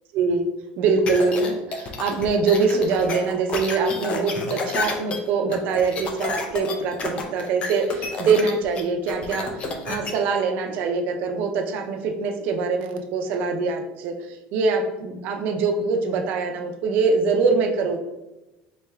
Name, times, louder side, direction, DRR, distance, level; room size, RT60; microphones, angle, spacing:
voice 1, 0.8-18.0, right 4 dB, 50° right, 3 dB, 0.6 m, -23 dB
sound 1, 1.1-10.1, left 3 dB, 30° left, 0.5 m, -29 dB
3.9 x 3.3 x 3.4 m, 0.99 s
cardioid pair, 170°, 4 cm